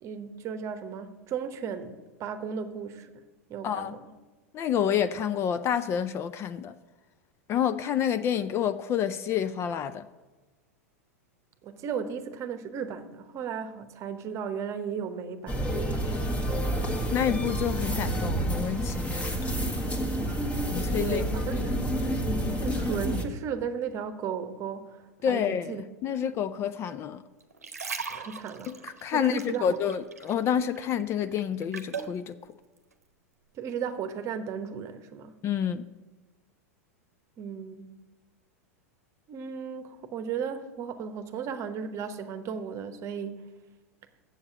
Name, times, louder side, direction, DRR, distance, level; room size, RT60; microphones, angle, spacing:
voice 1, 0.0-3.1 3.5-4.0 11.6-15.8 21.0-21.8 22.6-25.8 28.1-28.7 29.1-29.8 33.5-35.3 37.4-37.9 39.3-43.5, right 7 dB, 35° right, 0.9 m, -35 dB
voice 2, 3.6-4.0 4.5-6.7 7.5-10.0 17.1-19.6 20.7-21.2 25.2-27.2 28.7-32.4 35.4-35.9, left 9 dB, 30° left, 0.4 m, -28 dB
sound 1, 15.5-23.2, right 1 dB, 15° left, 1.4 m, -29 dB
sound 2, 27.4-30.5 30.7-32.2 32.8-32.9, right 5 dB, 90° right, 0.8 m, -38 dB
7.8 x 7.2 x 7.7 m
hypercardioid pair, 95°, 8 cm